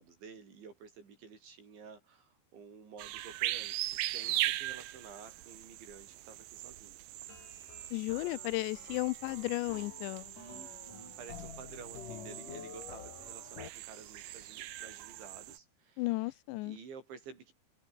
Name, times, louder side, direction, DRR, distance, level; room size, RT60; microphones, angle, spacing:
voice 1, 0.0-7.0 10.4-16.3 16.6-17.5, right 5 dB, 90° right, 8.5 m, -52 dB
sound 1, 3.0-15.6, right 15 dB, 70° right, 2.2 m, -40 dB
sound 2, 7.3-13.7, left 7 dB, 50° left, 4.6 m, -50 dB
voice 2, 7.9-10.3 16.0-16.8, left 21 dB, 85° left, 2.9 m, -34 dB
omnidirectional pair, 5.1 m